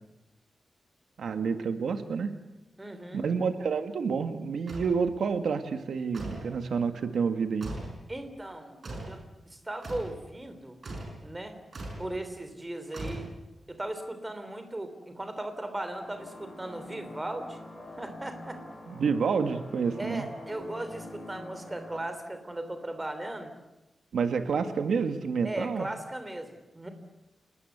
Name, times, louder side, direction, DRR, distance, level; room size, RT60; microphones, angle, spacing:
voice 1, 1.2-2.4 3.1-7.7 18.9-20.3 24.1-25.9, right 5 dB, 75° right, 8 dB, 1.8 m, -29 dB
voice 2, 2.8-3.2 8.1-8.8 9.1-10.8 11.2-11.5 12.0-13.3 13.7-17.6 18.0-18.6 20.0-23.5 25.4-26.9, right 1 dB, 15° right, 8 dB, 3.1 m, -37 dB
sound 1, 4.7-5.0 6.1-6.5 7.6-8.0 8.8-9.2 9.8-10.2 10.8-11.2 11.7-12.1 12.9-13.6, right 1 dB, 40° right, 6.0 m, -39 dB
sound 2, 15.9-22.0, left 1 dB, 5° left, 7.5 m, -45 dB
28.5 x 19.5 x 8.2 m, 1.0 s
wide cardioid pair, 175°, 0 cm